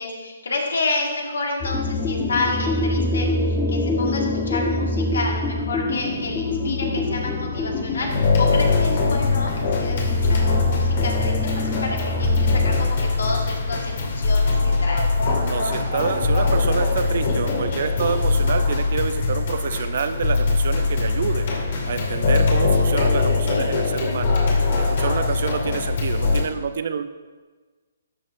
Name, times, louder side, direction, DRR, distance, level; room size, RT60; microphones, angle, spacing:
voice 1, 0.0-15.0 25.1-25.5, left 3 dB, 80° left, 0 dB, 1.8 m, -30 dB
sound 1, 1.6-12.8, left 2 dB, 15° left, 0.9 m, -26 dB
sound 2, 8.1-26.4, left 4 dB, 55° left, 2.1 m, -21 dB
voice 2, 15.4-21.5 21.9-24.3 24.8-27.2, right 6 dB, 60° right, 10 dB, 0.5 m, -27 dB
12.0 x 6.1 x 2.6 m, 1.4 s
hypercardioid pair, 145°, 0 cm